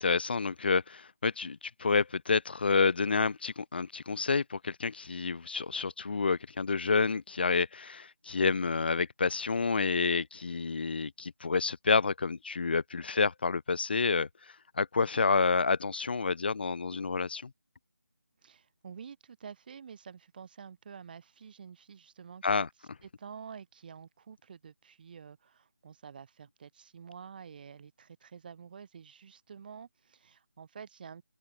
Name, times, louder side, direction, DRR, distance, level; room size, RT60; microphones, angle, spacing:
voice 1, 0.0-14.3 14.8-17.5 22.4-22.7, left 4 dB, 35° left, 0.4 m, -29 dB
voice 2, 18.4-31.2, right 7 dB, 30° right, 7.4 m, -49 dB
open air
figure-of-eight pair, 165°, 10 cm